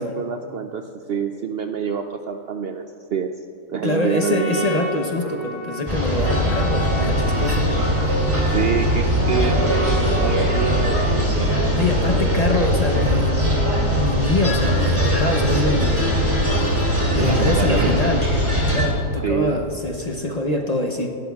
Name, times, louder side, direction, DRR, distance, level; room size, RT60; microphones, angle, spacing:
voice 1, 0.0-2.8 3.1-3.3 3.7-4.7 7.4-7.6 8.5-11.7 12.1-12.2 12.5-12.6 17.1-18.0 19.2-19.6, right 7 dB, 65° right, 6 dB, 0.6 m, -27 dB
voice 2, 3.8-7.8 11.8-13.5 14.0-16.1 17.1-18.3 18.6-21.2, left 2 dB, 40° left, 2 dB, 0.7 m, -24 dB
Trumpet, 3.8-11.1, equal, 20° left, 1.8 m, -33 dB
sound 1, 5.9-18.9, equal, 20° right, 2.2 m, -20 dB
27.0 x 12.0 x 2.3 m, 3.0 s
omnidirectional pair, 1.4 m